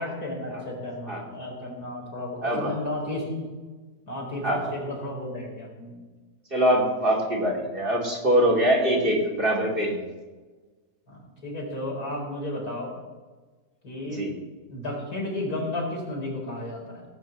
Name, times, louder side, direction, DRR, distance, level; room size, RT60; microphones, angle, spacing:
voice 1, 0.0-3.5 4.1-6.0 11.1-13.0 13.8-14.3 14.7-17.0, left 1 dB, 80° left, -2 dB, 4.5 m, -33 dB
voice 2, 2.4-2.7 4.4-4.7 6.5-10.0 14.1-14.3, right 1 dB, 35° right, -2 dB, 2.9 m, -23 dB
18.0 x 6.1 x 7.8 m, 1.3 s
omnidirectional pair, 1.6 m